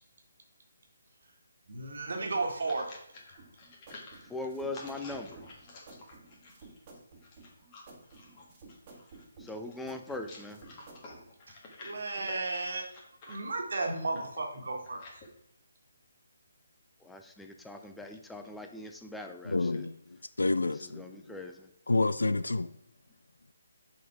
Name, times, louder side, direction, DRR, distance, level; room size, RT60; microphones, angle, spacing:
voice 1, 1.7-2.9 11.8-12.9 13.3-15.0, right 3 dB, 65° right, 1.6 m, -33 dB
sound 1, 2.4-15.3, left 2 dB, 25° left, 1.6 m, -51 dB
sound 2, 3.4-11.2, right 3 dB, 30° right, 1.5 m, -53 dB
voice 2, 4.3-5.4 9.4-10.6 17.0-19.9 20.7-21.7, left 2 dB, 5° left, 0.5 m, -41 dB
voice 3, 19.4-21.4 21.9-22.7, left 3 dB, 75° left, 0.3 m, -29 dB
6.8 x 4.1 x 4.7 m
figure-of-eight pair, 145°, 0 cm